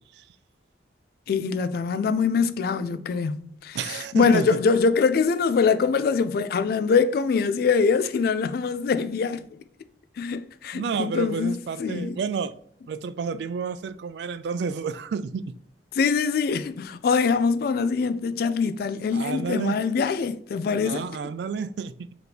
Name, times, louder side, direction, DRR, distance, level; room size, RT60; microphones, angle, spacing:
voice 1, 1.3-9.4 10.2-12.2 15.9-21.1, left 5 dB, 55° left, 0.3 m, -23 dB
voice 2, 3.7-4.5 10.7-12.5 12.9-15.5 19.1-19.8 20.7-22.0, right 5 dB, 65° right, 0.3 m, -30 dB
4.1 x 2.8 x 3.3 m
head